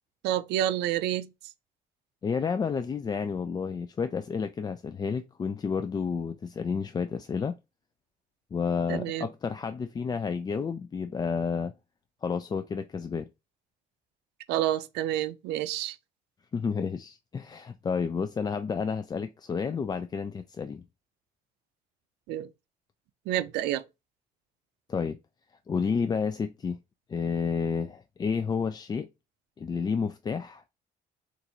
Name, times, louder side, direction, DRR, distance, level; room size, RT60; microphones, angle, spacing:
voice 1, 0.2-1.3 8.9-9.3 14.5-16.0 22.3-22.5 23.3-23.8, right 12 dB, 85° right, 0.5 m, -29 dB
voice 2, 2.2-7.6 8.5-11.7 12.2-13.3 16.5-20.8 24.9-25.2 25.7-26.8 27.1-29.1 29.6-30.6, left 5 dB, 25° left, 0.3 m, -30 dB
4.0 x 2.6 x 4.3 m
cardioid pair, 110°, 17 cm